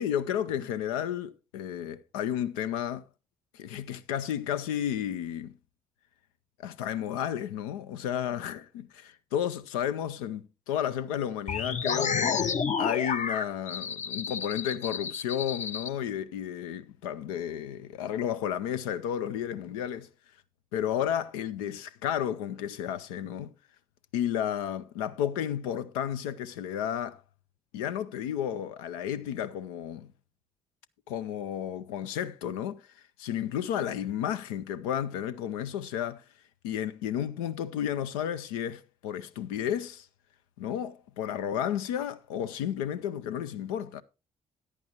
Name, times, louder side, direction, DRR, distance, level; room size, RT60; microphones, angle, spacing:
voice 1, 0.0-3.0 3.5-5.6 6.6-20.1 20.7-23.5 24.1-27.2 27.7-30.1 31.1-32.8 33.2-36.2 36.6-40.1 40.6-44.0, left 10 dB, 80° left, 0.5 m, -32 dB
sound 1, 11.5-15.9, left 6 dB, 40° left, 0.7 m, -30 dB
14.0 x 9.6 x 2.9 m
hypercardioid pair, 45°, 18 cm